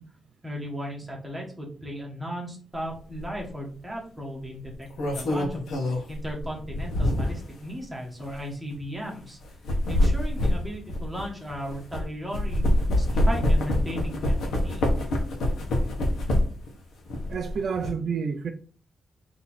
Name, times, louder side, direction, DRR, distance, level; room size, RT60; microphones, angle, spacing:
voice 1, 0.4-9.4 9.9-12.6 13.0-14.8, equal, 10° right, 1.4 m, -36 dB
sound 1, 3.2-3.4 4.6-7.5 8.2-8.3 9.4-12.0 12.3-16.7 17.1-17.9, left 1 dB, 90° left, 1.1 m, -25 dB
voice 2, 17.3-18.5, right 6 dB, 60° right, 0.4 m, -29 dB
4.3 x 2.9 x 4.1 m
wide cardioid pair, 145°, 0 cm